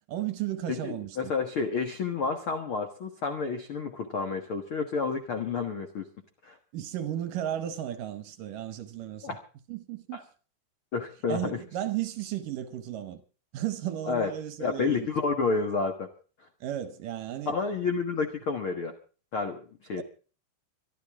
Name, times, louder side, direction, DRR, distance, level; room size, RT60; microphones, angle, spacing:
voice 1, 0.1-1.3 6.7-9.4 9.7-10.2 11.3-13.2 13.5-15.1 16.6-17.6 20.0-20.1, right 11 dB, 70° right, 2.2 m, -34 dB
voice 2, 0.7-6.0 6.4-6.6 9.2-9.4 10.1-10.2 10.9-11.6 14.1-14.3 14.6-16.1 17.4-18.9 19.3-19.6 19.9-20.0, left 4 dB, 80° left, 1.1 m, -30 dB
24.5 x 12.0 x 3.6 m
omnidirectional pair, 4.9 m